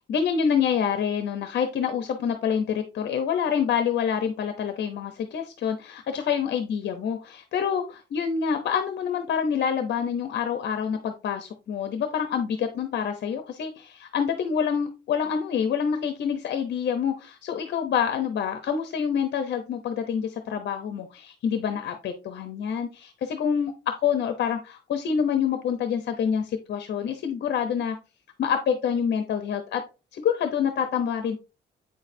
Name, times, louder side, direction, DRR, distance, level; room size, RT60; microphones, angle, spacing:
voice 1, 0.1-28.0 28.4-29.8 30.1-31.4, left 7 dB, 60° left, 7 dB, 0.8 m, -27 dB
8.6 x 6.3 x 2.7 m, 0.30 s
cardioid pair, 155°, 19 cm